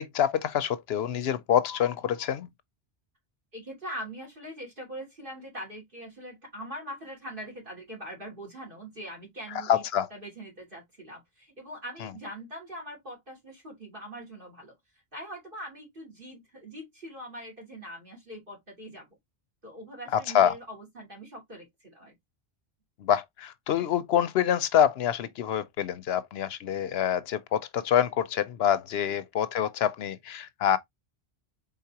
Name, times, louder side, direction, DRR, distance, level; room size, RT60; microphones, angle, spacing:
voice 1, 0.0-2.5 9.7-10.1 20.1-20.5 23.0-30.8, left 9 dB, 75° left, 0.8 m, -26 dB
voice 2, 3.5-14.8 15.1-19.2 19.6-22.1, equal, 55° right, 3.1 m, -42 dB
4.8 x 3.8 x 2.8 m
omnidirectional pair, 1.1 m